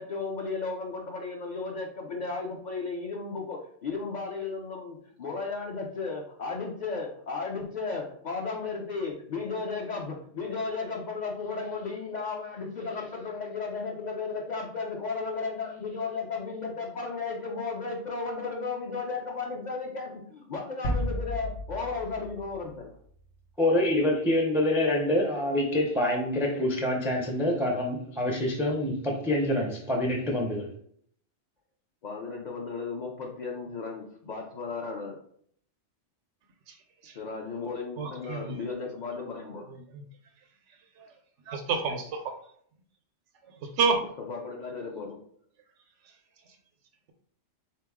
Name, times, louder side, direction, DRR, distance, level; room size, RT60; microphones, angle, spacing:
voice 1, 0.0-22.9 32.0-35.1 37.1-39.6 44.3-45.2, left 4 dB, 50° left, -1 dB, 0.6 m, -34 dB
sound 1, 20.8-23.3, equal, 80° left, 1.2 m, -33 dB
voice 2, 23.6-30.7, left 1 dB, 5° right, 0 dB, 0.4 m, -26 dB
voice 3, 38.0-38.6 39.2-39.3 39.9-40.0 41.5-42.1 43.8-44.0, right 4 dB, 85° right, 4 dB, 0.9 m, -28 dB
3.8 x 2.9 x 3.5 m, 0.63 s
omnidirectional pair, 1.2 m